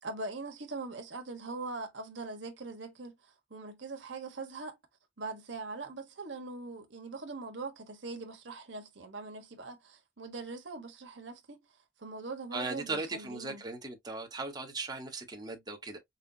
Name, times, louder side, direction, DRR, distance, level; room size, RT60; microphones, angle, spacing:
voice 1, 0.0-3.2 3.5-4.8 5.2-11.6 12.0-13.6, right 3 dB, 90° right, 1.3 m, -42 dB
voice 2, 12.5-16.0, right 3 dB, 20° right, 1.3 m, -38 dB
5.6 x 2.4 x 2.7 m
head